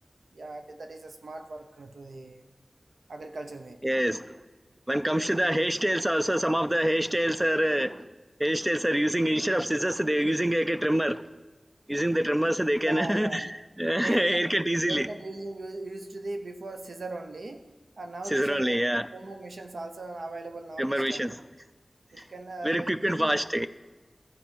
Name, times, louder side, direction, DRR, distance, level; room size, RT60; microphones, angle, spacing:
voice 1, 0.3-2.4 3.1-3.8 12.8-13.5 14.0-14.5 14.9-17.7 18.0-18.8 19.1-21.3 22.1-23.4, right 2 dB, 80° right, 0.8 m, -39 dB
voice 2, 3.8-4.3 4.9-8.1 8.4-11.2 11.9-13.5 13.8-15.1 18.3-19.1 20.8-21.3 22.2-22.3 22.6-23.7, equal, 15° right, 0.4 m, -26 dB
13.5 x 4.7 x 7.4 m
wide cardioid pair, 60°, 0 cm